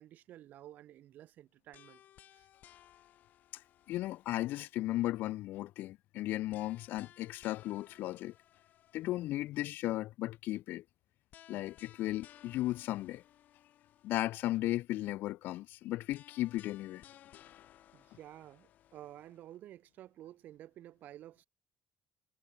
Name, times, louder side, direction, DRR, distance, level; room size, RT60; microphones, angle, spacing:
voice 1, 0.0-2.0 2.3-2.5 17.9-21.4, right 13 dB, 60° right, 4.2 m, -52 dB
sound 1, 1.7-4.9 6.5-9.5 11.3-14.5 16.1-19.6, left 12 dB, 55° left, 5.3 m, -60 dB
voice 2, 3.9-8.3 8.9-10.8 11.5-13.2 14.0-17.0, left 16 dB, 75° left, 1.3 m, -35 dB
cardioid pair, 160°, 3 cm